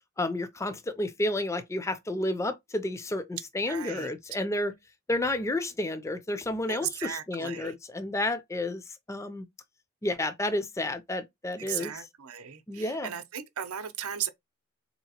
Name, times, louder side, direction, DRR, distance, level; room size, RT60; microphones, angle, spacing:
voice 1, 0.2-4.7 5.1-9.5 10.0-11.9 12.7-13.1, left 1 dB, 15° left, 0.4 m, -31 dB
voice 2, 3.7-4.1 6.7-7.7 11.6-14.3, right 9 dB, 85° right, 0.6 m, -36 dB
4.0 x 2.8 x 2.8 m
head